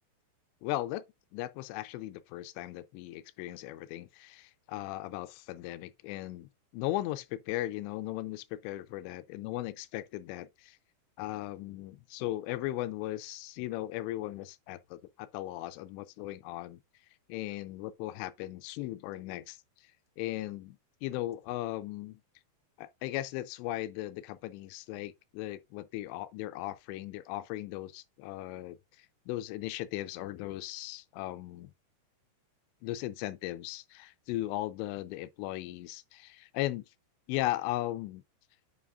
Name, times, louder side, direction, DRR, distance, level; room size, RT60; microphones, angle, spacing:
voice 1, 0.6-1.0 1.3-10.8 11.2-16.8 17.3-19.6 20.2-22.2 22.8-31.7 32.8-36.8 37.3-38.2, left 16 dB, 90° left, 2.8 m, -37 dB
8.3 x 5.6 x 2.4 m
omnidirectional pair, 5.0 m